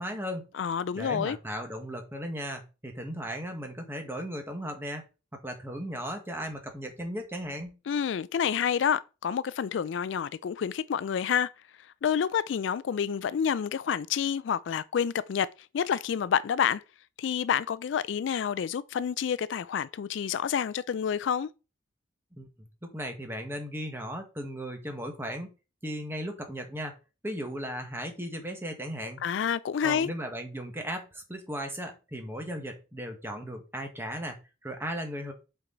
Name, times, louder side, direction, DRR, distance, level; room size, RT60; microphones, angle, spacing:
voice 1, 0.0-0.5 0.9-5.0 5.4-7.8 22.3-22.5 22.8-25.5 25.8-26.9 27.2-29.2 29.8-35.3, equal, 10° right, 1.5 m, -36 dB
voice 2, 0.5-1.4 7.9-11.5 12.0-15.5 15.7-16.8 17.2-21.5 29.2-30.1, left 7 dB, 70° left, 0.3 m, -28 dB
7.5 x 4.6 x 3.9 m
head